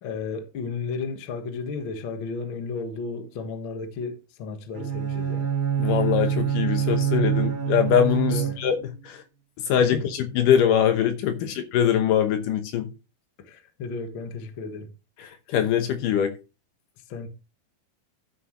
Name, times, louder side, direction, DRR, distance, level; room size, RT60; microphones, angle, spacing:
voice 1, 0.0-5.5 8.2-8.6 9.8-10.0 11.4-11.5 13.4-14.9 17.1-17.3, left 4 dB, 55° left, 1.5 m, -34 dB
Bowed string instrument, 4.7-9.0, right 9 dB, 75° right, 0.9 m, -26 dB
voice 2, 5.8-8.8 9.0-9.2 9.7-12.9 15.2-16.4, left 9 dB, 70° left, 2.4 m, -23 dB
12.5 x 7.6 x 3.1 m
omnidirectional pair, 4.2 m